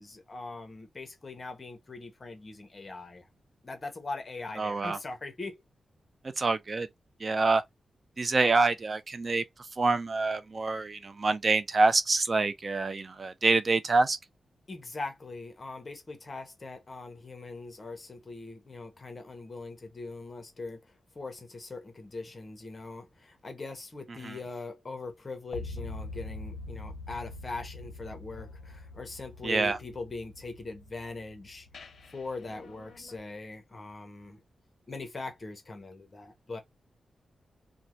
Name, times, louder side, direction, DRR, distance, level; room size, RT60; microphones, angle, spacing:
voice 1, 0.0-3.3 3.6-5.6 14.7-20.8 21.1-31.7 32.1-34.4 34.9-36.6, left 3 dB, 30° left, 0.8 m, -41 dB
voice 2, 4.6-5.0 6.4-6.9 7.2-7.6 8.2-9.4 9.8-14.2 24.2-24.4 29.4-29.8, right 3 dB, 40° right, 0.3 m, -26 dB
sound 1, 25.5-33.2, left 2 dB, 70° left, 0.5 m, -44 dB
2.6 x 2.1 x 2.9 m
wide cardioid pair, 130°, 0 cm